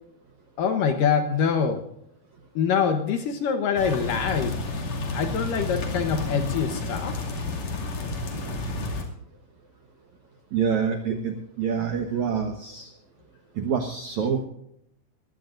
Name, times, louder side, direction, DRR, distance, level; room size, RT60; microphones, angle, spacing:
voice 1, 0.6-1.8 2.6-4.7 5.1-7.2, left 6 dB, 70° left, 6 dB, 2.2 m, -25 dB
sound 1, 3.8-9.0, left 2 dB, 45° left, 3.2 m, -31 dB
voice 2, 10.5-12.9 13.6-14.4, right 6 dB, 75° right, 4 dB, 1.7 m, -26 dB
21.5 x 16.5 x 2.6 m, 0.74 s
omnidirectional pair, 5.2 m